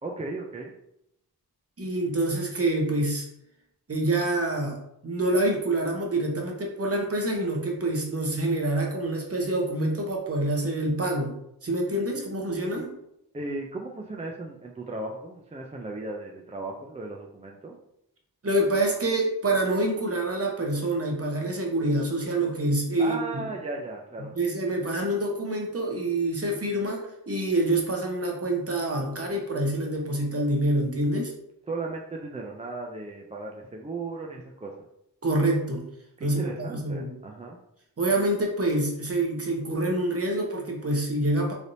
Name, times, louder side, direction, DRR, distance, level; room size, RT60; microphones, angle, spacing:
voice 1, 0.0-0.7 12.8-12.9 13.3-17.8 23.0-24.3 31.7-34.7 36.2-37.6, right 2 dB, 20° right, 0 dB, 0.3 m, -36 dB
voice 2, 1.8-3.3 3.9-4.8 5.0-11.3 11.6-12.9 18.4-23.5 24.3-31.3 35.2-35.8 36.2-37.1 38.0-41.5, right 1 dB, 35° right, 0 dB, 0.8 m, -26 dB
3.3 x 2.7 x 2.6 m, 0.80 s
wide cardioid pair, 65°, 40 cm